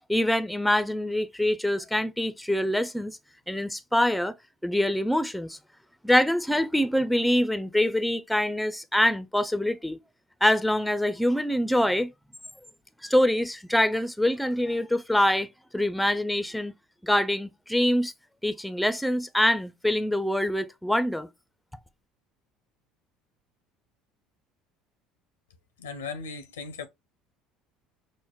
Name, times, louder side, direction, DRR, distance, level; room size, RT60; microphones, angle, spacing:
voice 1, 0.1-3.2 3.5-4.3 4.6-5.6 6.0-10.0 10.4-12.1 13.0-15.5 15.7-16.7 17.0-18.1 18.4-21.3, left 1 dB, 5° left, 0.4 m, -25 dB
voice 2, 25.8-26.9, left 5 dB, 85° left, 0.5 m, -37 dB
5.1 x 2.1 x 2.2 m
hypercardioid pair, 70°, 0 cm